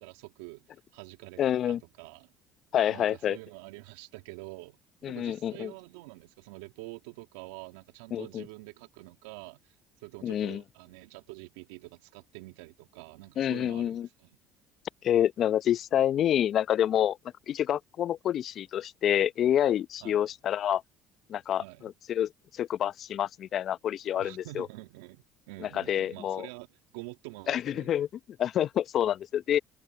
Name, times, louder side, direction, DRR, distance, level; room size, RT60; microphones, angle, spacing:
voice 1, 0.0-1.4 1.7-2.3 2.9-4.8 5.1-9.7 10.0-14.3 20.0-20.2 21.6-21.9 24.1-27.9, right 21 dB, 80° right, 2.2 m, -46 dB
voice 2, 1.4-1.8 2.7-3.4 5.0-5.7 8.1-8.4 10.2-10.6 13.4-14.1 15.0-17.2 17.5-20.8 21.3-24.7 25.6-26.5 27.5-28.1 28.4-29.6, left 10 dB, 55° left, 0.7 m, -28 dB
hypercardioid pair, 65°, 0 cm